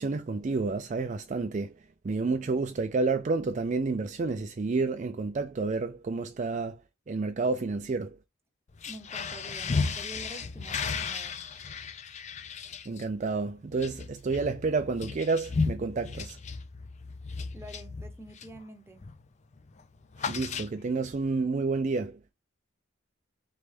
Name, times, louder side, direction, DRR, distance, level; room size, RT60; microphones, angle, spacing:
voice 1, 0.0-6.8 7.1-8.2 12.9-16.4 20.2-22.2, right 3 dB, 35° right, 0.3 m, -30 dB
sound 1, 8.7-18.6 19.0-19.3 19.5-21.1, left 4 dB, 35° left, 0.5 m, -35 dB
voice 2, 8.9-11.4 17.5-19.1, right 2 dB, 10° right, 0.7 m, -47 dB
4.0 x 3.3 x 3.3 m
head